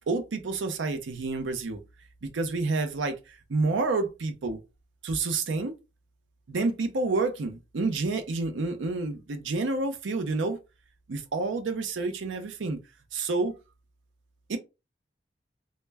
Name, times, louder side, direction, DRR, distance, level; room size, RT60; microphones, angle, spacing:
voice 1, 0.1-1.8 2.2-4.6 5.0-5.7 6.5-10.6 11.1-12.8 13.1-13.5 14.5-14.6, right 3 dB, 90° right, 0.5 m, -29 dB
2.1 x 2.1 x 3.2 m
head